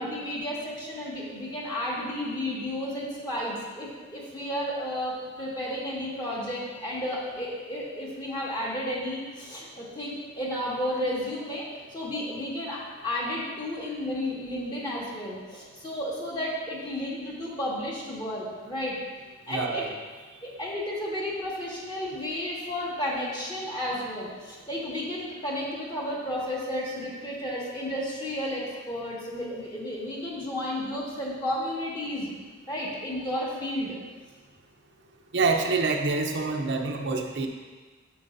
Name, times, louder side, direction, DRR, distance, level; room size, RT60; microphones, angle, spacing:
voice 1, 0.0-11.6 11.9-19.0 19.5-19.9 20.4-32.3 32.7-34.0, left 1 dB, 25° left, -6 dB, 1.8 m, -32 dB
voice 2, 19.5-19.9 35.3-37.5, right 3 dB, 65° right, 3 dB, 0.7 m, -26 dB
9.1 x 7.4 x 2.7 m, 1.4 s
head